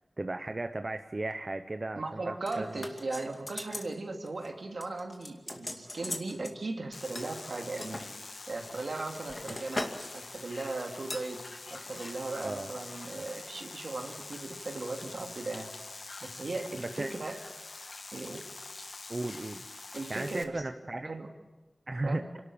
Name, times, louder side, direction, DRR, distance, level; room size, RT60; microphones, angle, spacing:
voice 1, 0.2-2.8 12.4-12.7 16.8-17.1 19.1-19.7 20.1-21.1 21.9-22.2, right 2 dB, 45° right, 8 dB, 0.9 m, -35 dB
voice 2, 2.0-8.0 8.5-11.4 11.7-15.7 16.2-17.4 18.1-18.4 19.9-20.6 21.1-21.3 22.0-22.2, right 2 dB, 80° right, 3 dB, 2.5 m, -37 dB
sound 1, 2.5-3.9 4.2-4.5 4.8-6.6 7.2-8.1 8.7-10.1 10.4-10.6 11.1-11.3 11.9-12.1 12.4-12.5, left 1 dB, 40° left, 2.4 m, -40 dB
sound 2, 6.9-20.4, left 3 dB, 70° left, 1.4 m, -45 dB
27.0 x 12.0 x 8.7 m, 1.2 s
wide cardioid pair, 50°, 0 cm